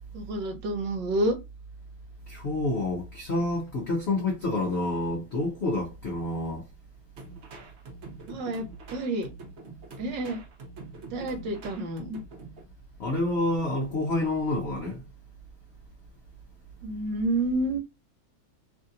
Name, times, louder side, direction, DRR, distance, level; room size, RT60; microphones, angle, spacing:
voice 1, 0.1-1.4 8.3-9.3 10.0-10.4 11.1-12.2 16.8-17.8, right 1 dB, 70° right, 1.4 m, -29 dB
voice 2, 2.3-6.6 13.0-15.0, left 2 dB, 90° left, 0.5 m, -28 dB
sound 1, 7.2-12.7, right 3 dB, 55° right, 0.8 m, -45 dB
3.2 x 2.6 x 2.5 m
omnidirectional pair, 2.2 m